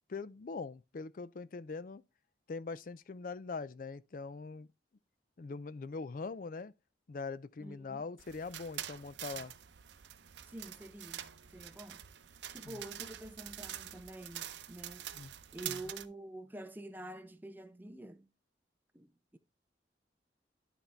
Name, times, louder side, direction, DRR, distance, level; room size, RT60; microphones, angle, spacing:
voice 1, 0.1-2.0 2.5-4.7 5.4-6.7 7.1-9.5 12.6-12.8 15.1-15.3 15.6-15.8, left 4 dB, 50° left, 0.4 m, -42 dB
voice 2, 7.6-8.0 10.4-11.2 11.5-12.0 12.5-15.1 15.5-18.3 18.9-19.4, right 1 dB, 10° right, 0.5 m, -48 dB
sound 1, 8.2-16.1, right 11 dB, 85° right, 0.6 m, -46 dB
11.5 x 4.2 x 3.3 m
head